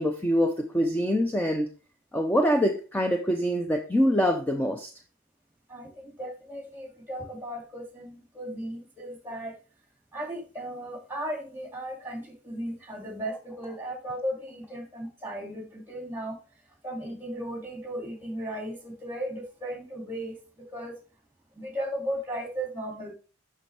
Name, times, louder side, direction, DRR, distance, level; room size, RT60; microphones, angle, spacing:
voice 1, 0.0-1.7 2.1-4.9, equal, 10° left, 3 dB, 0.6 m, -25 dB
voice 2, 5.7-9.5 10.1-16.4 16.8-20.4 20.7-21.0 21.5-23.1, right 1 dB, 10° right, 1 dB, 2.3 m, -36 dB
6.8 x 6.3 x 3.3 m, 0.35 s
head